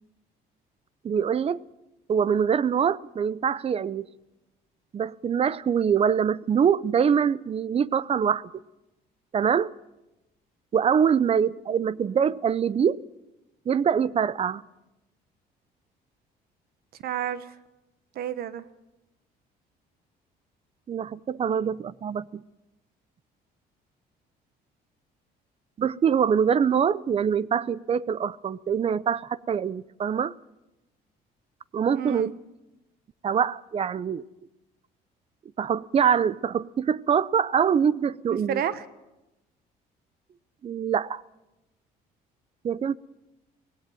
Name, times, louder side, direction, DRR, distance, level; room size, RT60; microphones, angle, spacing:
voice 1, 1.0-1.6 2.1-4.1 4.9-8.5 9.3-9.7 10.7-13.0 13.7-14.6 20.9-22.4 25.8-30.3 31.7-32.3 33.2-34.2 35.6-38.6 40.6-41.2 42.6-43.0, right 7 dB, 35° right, 20 dB, 0.6 m, -24 dB
voice 2, 17.0-17.5 18.1-18.6 31.9-32.3 38.3-38.8, right 9 dB, 65° right, 14 dB, 1.0 m, -30 dB
18.0 x 16.5 x 9.2 m, 0.99 s
cardioid pair, 110°, 17 cm